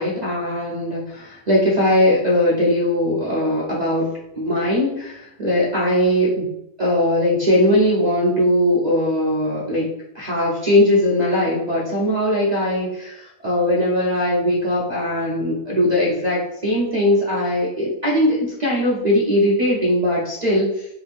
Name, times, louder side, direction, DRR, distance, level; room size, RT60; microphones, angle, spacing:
voice 1, 0.0-4.1 4.4-6.5 6.8-9.9 10.1-20.9, left 1 dB, 65° right, -6 dB, 0.4 m, -20 dB
3.4 x 2.5 x 3.3 m, 0.82 s
omnidirectional pair, 1.7 m